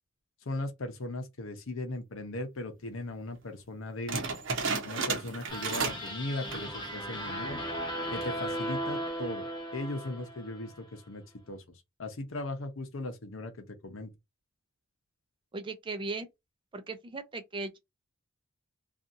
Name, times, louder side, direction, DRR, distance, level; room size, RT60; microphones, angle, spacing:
voice 1, 0.5-4.2 4.8-7.6 8.1-9.5 9.7-11.6 12.0-14.1, left 2 dB, 75° left, 0.7 m, -38 dB
sound 1, 4.1-6.1 6.4-6.8 7.3-7.4 8.0-8.4, right 4 dB, 65° right, 0.8 m, -33 dB
sound 2, 5.5-10.8, equal, 20° left, 0.8 m, -36 dB
voice 2, 15.5-16.3 16.7-17.8, right 3 dB, 25° right, 0.5 m, -37 dB
2.7 x 2.4 x 2.5 m
head